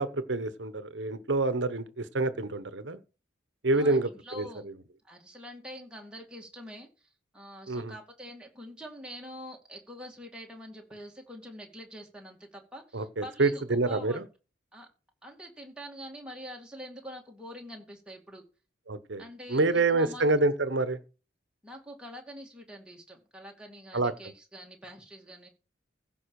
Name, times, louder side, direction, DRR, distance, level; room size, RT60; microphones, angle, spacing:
voice 1, 0.0-3.0 3.6-4.1 4.4-4.5 7.7-7.9 12.9-14.3 18.9-19.2 19.5-21.0 23.9-24.1, right 2 dB, 65° right, 1.1 m, -27 dB
voice 2, 3.7-4.6 5.0-14.3 14.7-14.9 15.2-18.4 19.2-20.3 21.6-25.5, equal, 5° right, 2.3 m, -45 dB
15.5 x 5.4 x 4.8 m
head